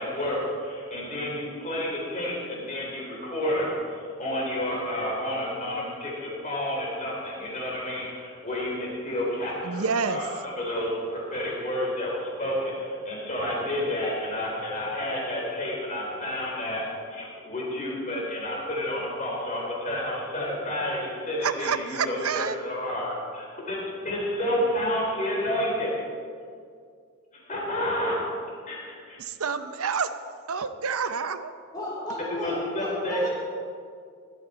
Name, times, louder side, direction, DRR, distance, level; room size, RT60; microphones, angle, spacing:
voice 1, 0.0-23.8 24.0-25.9 27.3-28.2 28.7-29.2 32.3-33.2, left 1 dB, 35° left, -3 dB, 3.3 m, -30 dB
voice 2, 9.6-10.2 21.4-22.6 29.2-30.1 30.5-31.5, right 5 dB, 80° right, 11 dB, 0.7 m, -28 dB
voice 3, 31.7-33.3, left 1 dB, 15° left, -5 dB, 3.7 m, -35 dB
15.5 x 12.5 x 4.1 m, 2.2 s
head